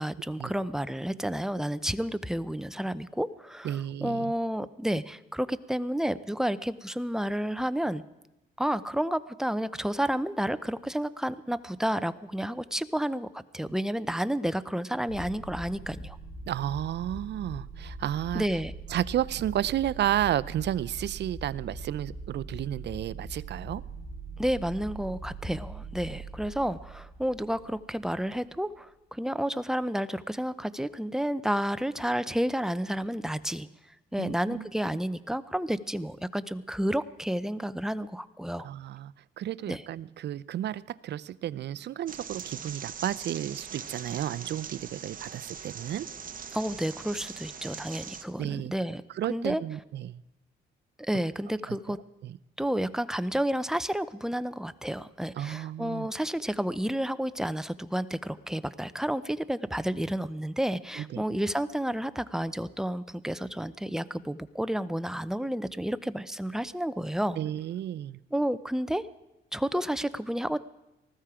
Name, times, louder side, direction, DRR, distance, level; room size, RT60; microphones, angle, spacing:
voice 1, 0.0-8.0 8.6-16.2 18.3-18.7 24.4-33.7 34.1-38.7 39.7-39.8 46.5-49.0 49.3-49.6 51.0-52.0 52.6-67.4 68.3-69.1 69.5-70.6, equal, 5° right, 13 dB, 0.6 m, -31 dB
voice 2, 3.6-4.3 16.5-18.4 18.9-23.8 34.2-34.7 38.6-46.1 48.4-48.7 49.1-50.2 51.7-52.0 52.2-52.4 55.4-56.1 61.0-61.3 67.4-68.2, right 11 dB, 60° right, 18 dB, 0.6 m, -32 dB
sound 1, 15.1-28.4, right 3 dB, 85° left, 7.7 m, -42 dB
sound 2, 42.1-48.2, right 7 dB, 45° right, 1.2 m, -41 dB
19.5 x 14.5 x 5.0 m, 0.95 s
cardioid pair, 90°, 20 cm